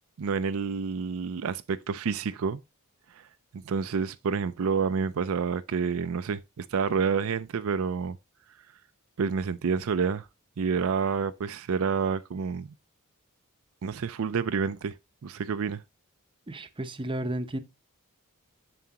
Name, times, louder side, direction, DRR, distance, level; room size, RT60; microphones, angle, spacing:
voice 1, 0.2-2.6 3.5-8.2 9.2-10.3 10.6-12.7 13.8-14.9 15.2-15.8, right 5 dB, 65° right, 0.4 m, -28 dB
voice 2, 16.5-17.6, right 1 dB, 20° right, 0.7 m, -32 dB
7.3 x 6.9 x 2.8 m
head